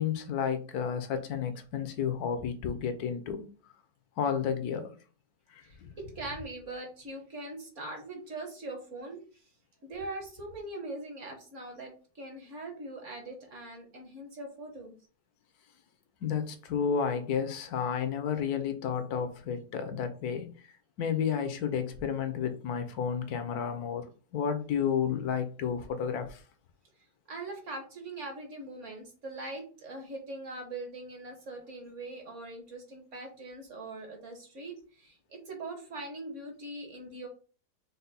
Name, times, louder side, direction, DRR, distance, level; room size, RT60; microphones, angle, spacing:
voice 1, 0.0-3.5 4.2-5.0 5.5-5.9 16.2-20.5 21.0-24.1 24.3-26.4, left 7 dB, 70° left, 9 dB, 1.1 m, -31 dB
voice 2, 5.6-9.4 9.8-15.0 27.3-37.3, right 2 dB, 50° right, 2 dB, 1.2 m, -42 dB
5.4 x 2.2 x 4.0 m, 0.38 s
omnidirectional pair, 1.9 m